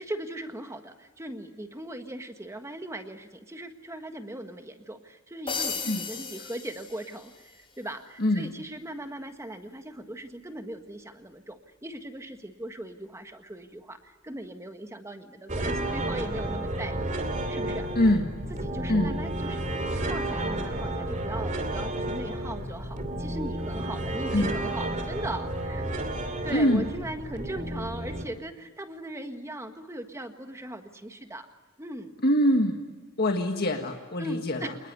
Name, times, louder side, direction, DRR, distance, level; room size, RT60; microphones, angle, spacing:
voice 1, 0.0-17.1 17.5-18.1 18.5-19.6 20.1-25.9 26.4-31.5 31.8-32.1 34.2-34.8, right 1 dB, 15° right, 7 dB, 1.6 m, -39 dB
sound 1, 5.5-7.5, left 5 dB, 25° left, 5.6 m, -35 dB
voice 2, 8.2-8.5 17.9-18.3 18.9-19.2 24.3-24.6 26.5-26.8 32.2-32.8 33.2-34.7, left 1 dB, 45° left, 4 dB, 1.7 m, -24 dB
sound 2, 15.5-28.2, right 1 dB, 35° right, 2.7 m, -31 dB
27.5 x 20.5 x 9.5 m, 1.3 s
head